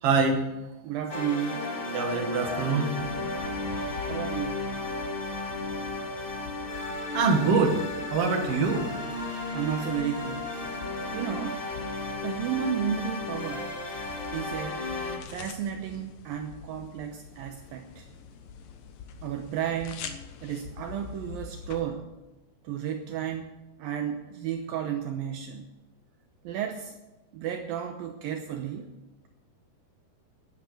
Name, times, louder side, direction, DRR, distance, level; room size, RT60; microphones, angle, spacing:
voice 1, 0.0-0.4 1.9-2.9 3.7-3.8 7.1-9.0, right 4 dB, 50° right, 3 dB, 2.0 m, -24 dB
voice 2, 0.8-1.7 4.0-4.6 9.5-10.5 11.1-11.6 12.2-13.7 14.3-14.8 15.3-18.1 19.2-20.1 20.4-22.1 22.6-25.7 26.4-26.9 27.3-28.9, right 8 dB, 80° right, 5 dB, 2.1 m, -33 dB
sound 1, 1.1-15.2, left 2 dB, 45° left, 0.7 m, -34 dB
sound 2, 3.0-21.8, left 6 dB, 70° left, 2.2 m, -45 dB
12.0 x 11.0 x 6.5 m, 1.0 s
omnidirectional pair, 5.2 m